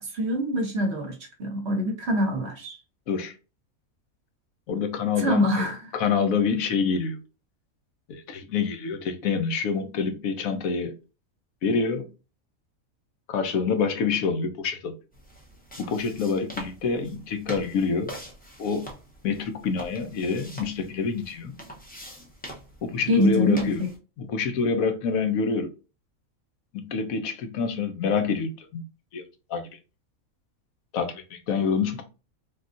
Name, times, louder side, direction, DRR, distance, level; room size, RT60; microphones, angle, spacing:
voice 1, 0.1-2.8 5.2-5.8 23.1-23.7, equal, 55° right, 0.9 m, -24 dB
voice 2, 4.7-5.7 5.9-7.2 8.1-11.0 11.6-12.1 13.3-14.9 15.8-18.1 18.6-18.8 19.2-21.6 22.8-23.8 24.2-25.7 26.7-28.8 29.1-29.2 29.5-29.7 30.9-32.0, left 5 dB, 80° left, 1.0 m, -27 dB
sound 1, 15.1-24.0, equal, 15° left, 0.4 m, -43 dB
3.5 x 2.4 x 2.5 m
omnidirectional pair, 1.5 m